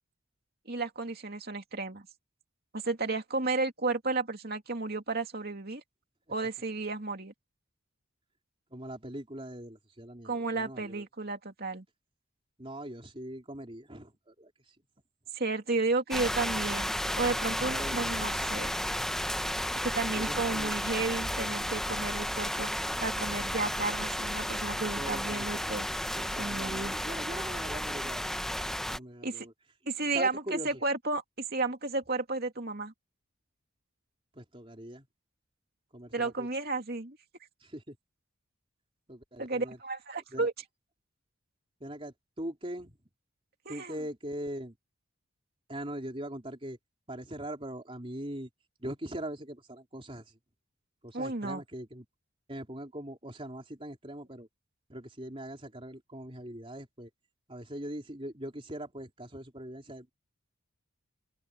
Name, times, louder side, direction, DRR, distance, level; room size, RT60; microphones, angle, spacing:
voice 1, 0.7-2.1 2.7-5.8 6.3-7.3 10.2-11.8 15.3-16.9 17.2-18.9 19.8-22.7 23.0-25.9 26.4-27.0 29.2-29.5 29.9-31.2 31.5-32.9 36.1-37.2 39.4-40.5 43.7-43.9 51.1-51.6, right 3 dB, 45° right, 2.7 m, -32 dB
voice 2, 8.7-11.0 12.6-14.8 17.6-18.7 20.1-20.8 25.0-25.7 26.2-28.3 28.9-29.5 30.1-30.8 34.4-35.1 35.9-36.5 37.6-38.0 39.1-39.8 40.3-40.5 41.8-43.0 43.7-44.8 45.7-46.8 47.1-48.5 48.8-50.3 51.0-52.0 52.5-54.5 54.9-57.1 57.5-60.1, right 1 dB, 25° right, 3.8 m, -41 dB
sound 1, 16.1-29.0, equal, ahead, 0.8 m, -33 dB
open air
head